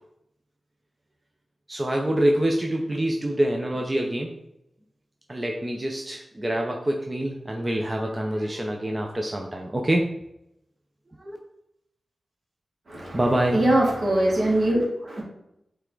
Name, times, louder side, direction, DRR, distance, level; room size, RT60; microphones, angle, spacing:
voice 1, 1.7-4.3 5.3-10.1 11.2-11.4 13.1-13.6, right 1 dB, 25° right, 1 dB, 0.7 m, -26 dB
voice 2, 12.9-13.2 13.5-15.2, right 1 dB, 60° right, -3 dB, 2.1 m, -22 dB
7.7 x 3.4 x 3.9 m, 0.81 s
wide cardioid pair, 80°, 0 cm